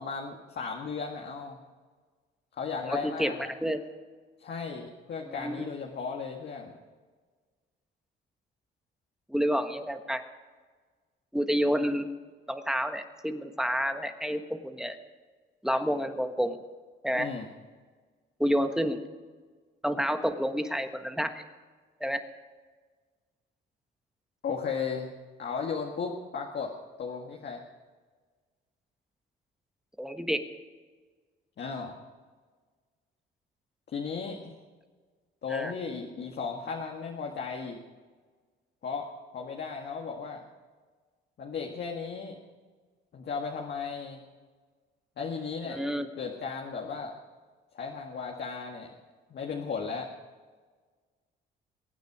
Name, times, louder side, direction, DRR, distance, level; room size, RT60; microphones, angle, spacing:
voice 1, 0.0-1.6 2.5-3.5 4.4-6.7 17.1-17.5 24.4-25.1 25.4-26.7 27.0-27.6 31.6-32.0 33.9-34.6 35.4-37.8 38.8-39.1 39.3-40.4 41.4-42.4 43.1-44.2 45.2-45.8 46.2-47.2 47.7-48.9 49.3-50.1, left 5 dB, 55° left, 0 dB, 1.9 m, -35 dB
voice 2, 2.8-3.3 3.6-3.8 5.3-5.7 9.3-10.2 11.3-12.1 12.5-15.0 15.6-16.6 17.0-17.3 18.4-19.0 19.8-21.4 22.0-22.2 30.0-30.4 35.5-35.7 45.6-46.1, equal, 5° right, 7 dB, 1.4 m, -29 dB
23.0 x 9.4 x 4.9 m, 1.4 s
cardioid pair, 90°, 20 cm